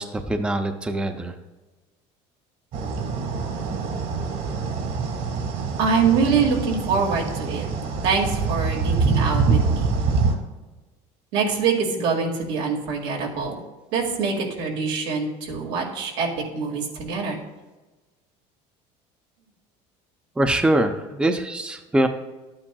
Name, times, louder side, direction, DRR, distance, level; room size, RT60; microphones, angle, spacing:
voice 1, 0.0-1.3 20.4-22.1, right 1 dB, 5° right, 6 dB, 0.5 m, -23 dB
sound 1, 2.7-10.3, right 4 dB, 60° right, 1.7 m, -25 dB
voice 2, 5.8-7.6 8.0-9.9 11.3-13.6 13.9-16.3 16.5-17.4, right 5 dB, 90° right, 0 dB, 2.1 m, -24 dB
11.5 x 8.7 x 2.3 m, 1.2 s
cardioid pair, 125°, 15 cm